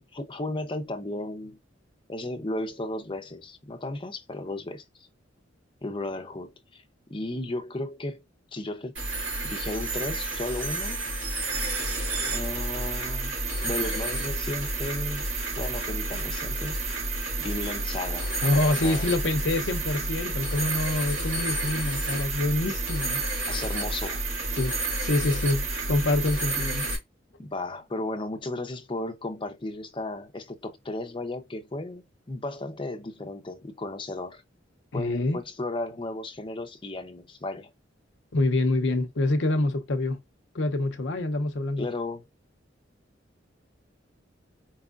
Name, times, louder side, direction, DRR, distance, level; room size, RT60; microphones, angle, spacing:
voice 1, 0.0-1.6 2.1-5.1 5.8-6.8 7.1-8.2 8.5-8.9 9.4-11.0 12.3-16.8 17.4-18.3 18.7-19.1 23.5-24.2 27.4-34.4 34.9-37.7 41.8-42.3, left 2 dB, 25° left, 0.7 m, -34 dB
sound 1, 9.0-27.0, right 2 dB, 90° right, 2.5 m, -30 dB
voice 2, 18.4-23.2 24.5-26.9 34.9-35.4 38.3-40.2 40.5-41.9, left 2 dB, 70° left, 0.7 m, -26 dB
4.7 x 3.5 x 2.4 m
head